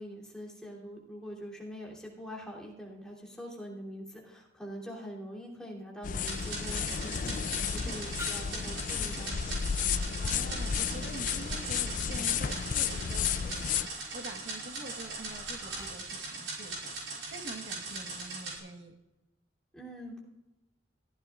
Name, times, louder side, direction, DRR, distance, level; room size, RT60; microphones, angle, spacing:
voice 1, 0.0-9.3 19.7-20.2, equal, 5° left, -5 dB, 3.1 m, -44 dB
sound 1, 6.0-13.9, left 7 dB, 45° left, 0.3 m, -32 dB
sound 2, 6.2-18.6, right 3 dB, 85° right, 5.8 m, -40 dB
sound 3, 8.2-16.0, equal, 20° right, 4.3 m, -51 dB
voice 2, 9.8-18.9, right 2 dB, 65° right, 2 dB, 1.4 m, -46 dB
22.5 x 15.0 x 2.5 m, 0.98 s
head